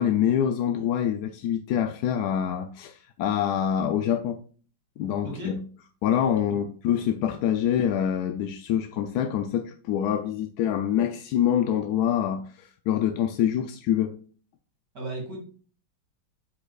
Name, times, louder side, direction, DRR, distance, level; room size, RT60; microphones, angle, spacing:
voice 1, 0.0-4.4 5.0-5.6 6.0-14.2, left 9 dB, 75° left, 0.9 m, -25 dB
voice 2, 5.2-5.6 14.9-15.4, right 2 dB, 50° right, 2.8 m, -35 dB
7.9 x 6.2 x 2.4 m
omnidirectional pair, 2.1 m